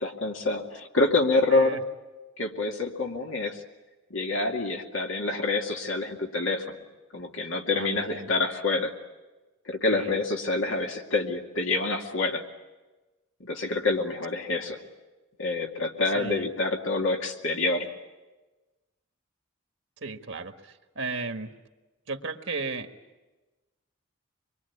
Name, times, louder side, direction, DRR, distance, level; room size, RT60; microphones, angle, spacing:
voice 1, 0.0-1.8 2.4-3.6 4.1-6.8 7.1-8.9 9.7-12.4 13.4-14.8 15.4-17.9, left 3 dB, 65° left, 2 dB, 2.4 m, -27 dB
voice 2, 7.7-8.3 9.9-10.2 16.1-16.5 20.0-21.5 22.1-22.9, right 4 dB, 60° right, 6 dB, 1.6 m, -35 dB
25.0 x 23.0 x 9.6 m, 1.2 s
head